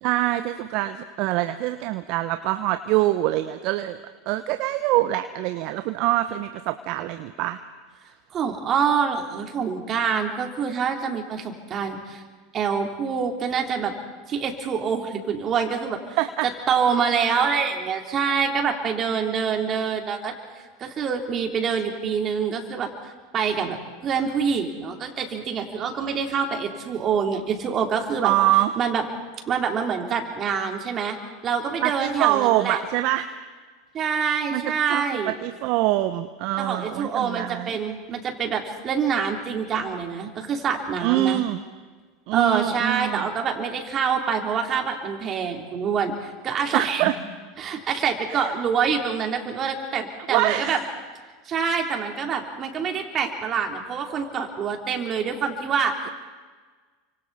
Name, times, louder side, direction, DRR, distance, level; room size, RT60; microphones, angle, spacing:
voice 1, 0.0-7.6 16.2-16.5 28.2-28.8 31.8-33.3 34.5-37.8 41.0-41.6 42.3-43.3 46.7-47.2 48.3-48.5 50.3-50.8, right 15 dB, 55° right, 10 dB, 0.9 m, -24 dB
voice 2, 8.3-12.2 12.5-13.9 14.3-16.2 16.7-20.3 20.8-22.9 23.3-23.8 24.0-28.3 28.8-29.0 29.5-31.2 31.4-32.8 33.9-35.3 36.6-41.4 42.3-47.1 47.6-50.8 51.5-56.1, right 6 dB, 35° right, 3 dB, 3.8 m, -26 dB
29.5 x 25.5 x 4.4 m, 1.4 s
hypercardioid pair, 85°, 0 cm